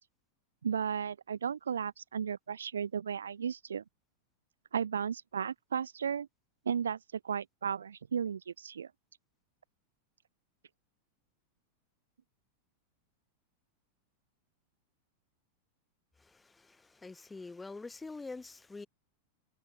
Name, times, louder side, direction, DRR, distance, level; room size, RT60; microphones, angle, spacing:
voice 1, 0.6-3.8 4.7-6.3 6.6-7.0 7.2-8.9, right 7 dB, 70° right, 1.2 m, -34 dB
voice 2, 16.2-18.9, left 3 dB, 10° left, 5.5 m, -46 dB
figure-of-eight pair, 90°, 0 cm